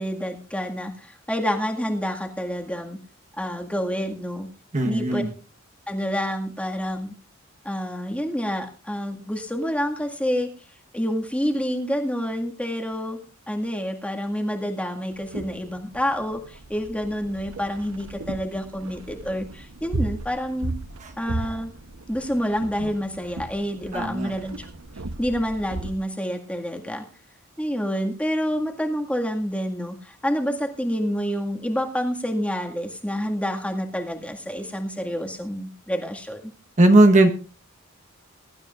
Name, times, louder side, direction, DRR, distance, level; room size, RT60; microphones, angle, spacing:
voice 1, 0.0-3.0 3.4-4.5 4.8-5.2 5.9-7.1 7.6-10.5 10.9-13.2 13.5-20.7 21.2-21.7 22.1-24.7 25.2-27.0 27.6-36.4, equal, 5° left, 2 dB, 1.9 m, -28 dB
voice 2, 4.7-5.3 21.0-21.1 23.9-24.3 36.8-37.3, right 1 dB, 35° right, 4 dB, 1.2 m, -17 dB
sound 1, 15.1-26.0, right 2 dB, 80° right, 0.9 m, -36 dB
22.0 x 12.0 x 2.5 m, 0.34 s
head